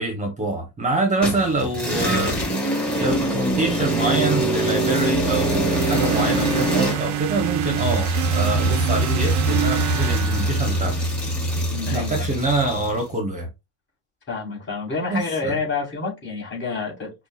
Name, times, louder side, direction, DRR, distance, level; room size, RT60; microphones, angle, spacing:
voice 1, 0.0-2.4 3.0-11.0 11.9-13.5 15.1-15.6, right 2 dB, 20° right, 0.9 m, -25 dB
sound 1, 1.2-13.0, right 1 dB, 5° left, 1.7 m, -24 dB
sound 2, 5.1-11.3, right 7 dB, 45° right, 0.5 m, -27 dB
voice 2, 11.7-12.3 14.3-17.1, left 4 dB, 30° left, 2.4 m, -28 dB
5.4 x 2.4 x 2.4 m
cardioid pair, 135°, 40 cm